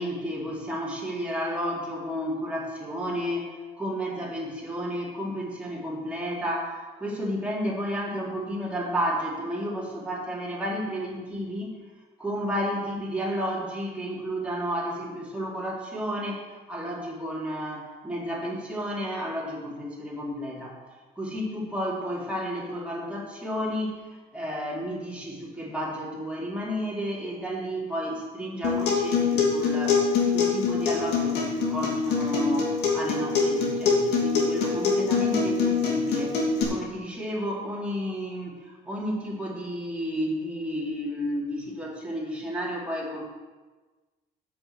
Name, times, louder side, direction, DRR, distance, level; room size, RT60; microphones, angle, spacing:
voice 1, 0.0-3.5 3.8-11.8 12.2-20.8 21.2-24.0 24.3-30.0 30.3-36.4 36.7-43.2, equal, 5° right, -5 dB, 3.7 m, -32 dB
Acoustic guitar, 28.6-36.6, left 5 dB, 80° left, 2.8 m, -24 dB
8.5 x 7.2 x 8.2 m, 1.3 s
cardioid pair, 110°, 17 cm